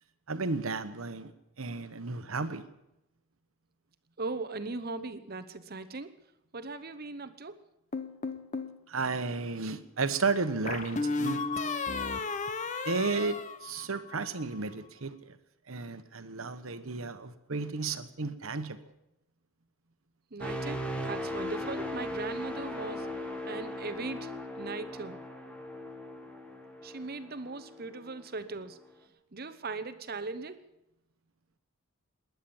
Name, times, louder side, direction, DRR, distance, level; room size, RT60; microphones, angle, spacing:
voice 1, 0.3-1.3 1.6-2.6 8.9-11.4 12.8-15.4 15.7-18.8, right 4 dB, 70° right, 11 dB, 1.1 m, -33 dB
voice 2, 4.2-6.1 6.5-7.6 20.3-23.1 23.5-25.2 26.8-28.8 29.3-30.6, right 3 dB, 45° right, 10 dB, 0.9 m, -39 dB
sound 1, 7.9-8.8 10.7-14.3, left 4 dB, 35° left, 0.9 m, -34 dB
sound 2, 20.4-28.2 28.7-28.9, left 1 dB, 5° left, 1.5 m, -38 dB
19.5 x 10.5 x 7.2 m, 0.89 s
head